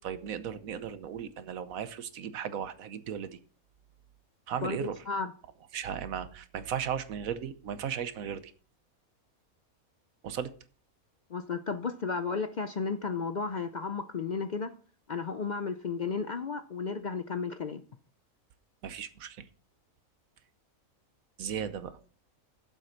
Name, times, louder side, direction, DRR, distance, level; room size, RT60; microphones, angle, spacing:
voice 1, 0.0-3.4 4.5-5.0 5.7-8.5 10.2-10.5 18.8-19.4 21.4-22.0, right 8 dB, 75° right, 13 dB, 1.2 m, -36 dB
voice 2, 4.6-5.3 11.3-14.7 15.1-17.8, left 5 dB, 70° left, 9 dB, 0.4 m, -33 dB
7.9 x 7.5 x 5.8 m, 0.41 s
omnidirectional pair, 1.5 m